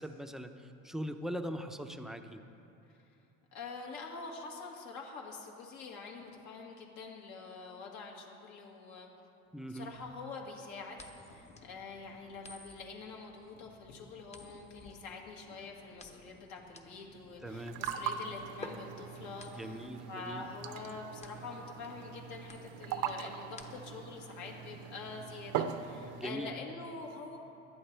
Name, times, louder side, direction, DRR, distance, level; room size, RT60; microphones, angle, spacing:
voice 1, 0.0-2.4 9.5-9.9 17.4-17.8 19.5-20.5 26.1-26.5, equal, ahead, 6 dB, 0.6 m, -41 dB
voice 2, 3.5-9.1 9.7-27.4, left 4 dB, 65° left, 0 dB, 2.1 m, -46 dB
sound 1, 6.2-6.3 9.4-18.2 18.5-19.3, left 2 dB, 85° left, 2.4 m, -62 dB
sound 2, 10.9-24.1, left 2 dB, 20° left, 1.0 m, -54 dB
sound 3, 17.4-26.3, right 8 dB, 75° right, 0.8 m, -41 dB
19.0 x 12.0 x 3.4 m, 2.8 s
cardioid pair, 120°, 32 cm